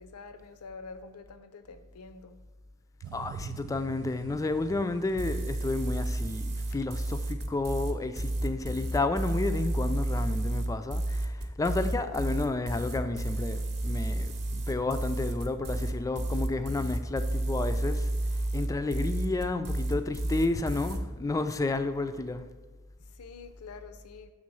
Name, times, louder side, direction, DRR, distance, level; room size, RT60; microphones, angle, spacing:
voice 1, 0.0-2.4 11.8-12.0 23.0-24.3, left 4 dB, 70° left, 9 dB, 0.5 m, -47 dB
sound 1, 3.0-8.6 9.1-9.2, right 8 dB, 85° right, 0.3 m, -46 dB
voice 2, 3.1-18.1 18.5-22.5, left 2 dB, 15° left, 9 dB, 0.3 m, -31 dB
sound 2, 5.2-21.0, right 1 dB, 50° right, 0.8 m, -31 dB
6.3 x 3.7 x 6.2 m, 1.3 s
head